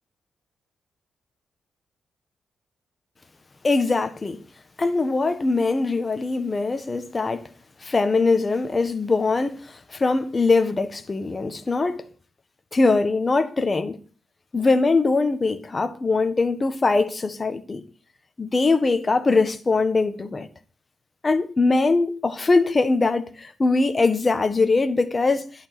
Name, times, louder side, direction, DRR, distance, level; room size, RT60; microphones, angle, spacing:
voice 1, 3.6-4.4 4.8-7.5 7.8-12.0 12.7-14.0 14.5-17.8 18.4-20.5 21.2-25.5, left 3 dB, 25° left, 1.4 m, -22 dB
11.5 x 11.0 x 6.0 m
cardioid pair, 135°, 0 cm